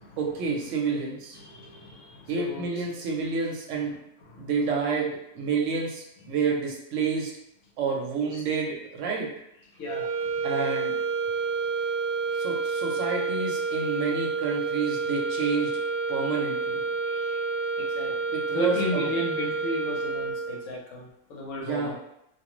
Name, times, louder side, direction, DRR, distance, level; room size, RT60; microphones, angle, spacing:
voice 1, 0.2-1.4 2.3-4.0 4.4-7.3 7.8-9.3 10.4-10.9 12.4-15.8 16.1-16.8 18.3-19.1 21.6-21.9, right 5 dB, 65° right, -1 dB, 1.0 m, -29 dB
voice 2, 1.3-2.8 4.2-4.5 6.2-6.3 8.2-8.4 9.8-10.3 17.0-17.4 17.8-21.9, equal, 70° left, -2 dB, 1.1 m, -35 dB
sound 1, 9.8-20.7, right 4 dB, 30° right, 0.4 m, -29 dB
2.5 x 2.4 x 3.0 m, 0.79 s
omnidirectional pair, 1.4 m